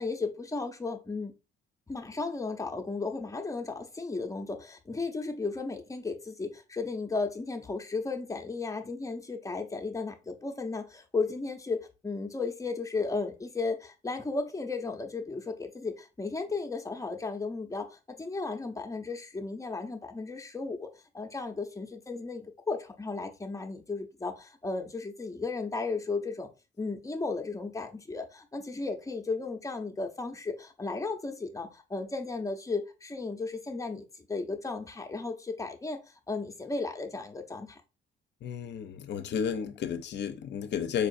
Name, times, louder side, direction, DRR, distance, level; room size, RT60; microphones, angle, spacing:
voice 1, 0.0-1.3 1.9-20.9 21.1-26.5 26.8-36.0 36.3-37.8, left 3 dB, 15° left, 0.6 m, -35 dB
voice 2, 38.4-41.1, left 7 dB, 60° left, 0.5 m, -32 dB
4.6 x 2.4 x 2.5 m
cardioid pair, 90°, 20 cm